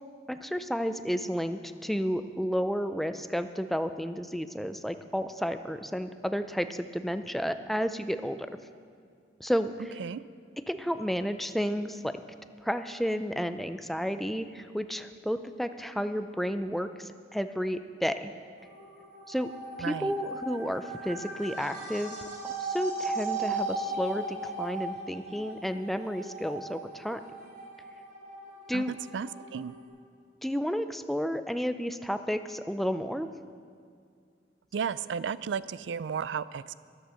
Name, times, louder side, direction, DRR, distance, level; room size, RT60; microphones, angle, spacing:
voice 1, 0.3-8.5 9.4-10.0 10.7-12.2 12.6-18.3 19.3-19.5 19.8-22.2 22.4-27.2 28.7-28.9 30.4-33.3, equal, ahead, 9 dB, 0.5 m, -32 dB
sound 1, 18.6-29.9, right 2 dB, 50° right, 4.1 m, -37 dB
voice 2, 19.8-20.1 28.7-28.8 29.1-29.7 34.7-36.7, right 6 dB, 85° right, 17 dB, 0.4 m, -33 dB
13.5 x 11.0 x 6.3 m, 2.2 s
head